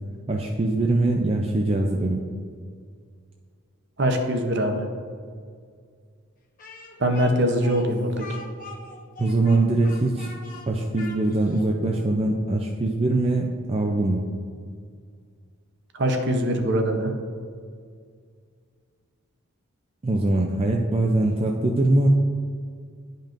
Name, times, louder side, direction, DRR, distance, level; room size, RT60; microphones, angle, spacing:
voice 1, 0.3-2.2 9.2-10.3 10.7-14.3 20.0-22.1, right 2 dB, 25° right, 0 dB, 0.4 m, -22 dB
voice 2, 4.0-4.9 7.0-8.2 15.9-17.1, right 1 dB, 50° right, 4 dB, 0.7 m, -23 dB
Speech, 6.6-11.7, left 3 dB, 40° left, 0.8 m, -43 dB
10.5 x 5.3 x 2.5 m, 2.1 s
head